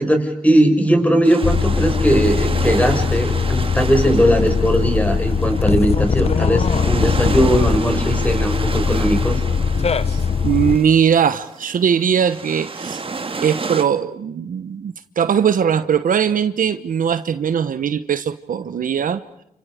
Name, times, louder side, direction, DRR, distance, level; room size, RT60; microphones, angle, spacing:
voice 1, 0.0-9.4, right 1 dB, 10° left, 6.2 m, -18 dB
sound 1, 1.2-13.8, right 4 dB, 40° right, 1.9 m, -31 dB
sound 2, 1.4-10.8, left 5 dB, 45° left, 1.2 m, -20 dB
voice 2, 10.1-13.0 13.4-19.2, right 8 dB, 65° right, 1.0 m, -20 dB
29.5 x 28.0 x 5.0 m
cardioid pair, 60°, 15 cm